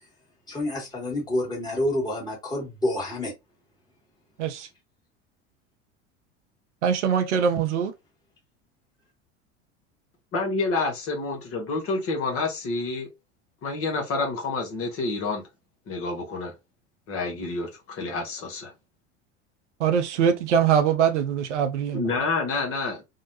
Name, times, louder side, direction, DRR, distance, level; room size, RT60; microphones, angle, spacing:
voice 1, 0.5-3.3, left 1 dB, 10° left, 1.5 m, -28 dB
voice 2, 6.8-7.9 19.8-22.0, right 7 dB, 65° right, 0.6 m, -22 dB
voice 3, 10.3-13.1 13.6-15.4 15.9-16.5 17.1-18.7 21.9-23.0, left 3 dB, 35° left, 0.9 m, -28 dB
2.7 x 2.1 x 2.7 m
figure-of-eight pair, 75°, 38 cm